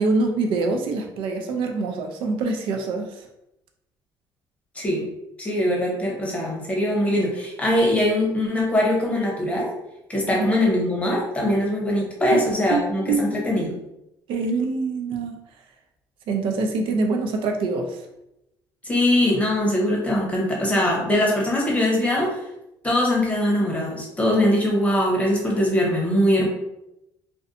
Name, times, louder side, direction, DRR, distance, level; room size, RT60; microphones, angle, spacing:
voice 1, 0.0-3.1 12.3-12.4 12.7-13.3 14.3-15.4 16.3-18.0, right 3 dB, 75° right, 4 dB, 0.4 m, -24 dB
voice 2, 4.7-5.1 5.4-9.7 10.1-13.8 18.8-22.4 22.8-26.5, left 1 dB, 15° left, -2 dB, 0.9 m, -22 dB
2.5 x 2.2 x 2.4 m, 0.87 s
cardioid pair, 90°, 9 cm